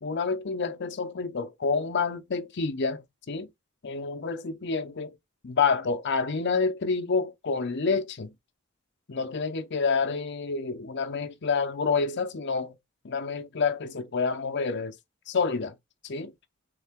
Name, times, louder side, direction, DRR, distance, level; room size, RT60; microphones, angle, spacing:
voice 1, 0.0-3.5 3.8-5.2 5.4-8.3 9.1-12.8 13.0-15.0 15.3-15.7 16.0-16.3, left 4 dB, 55° left, 0.6 m, -28 dB
3.7 x 3.3 x 3.5 m
head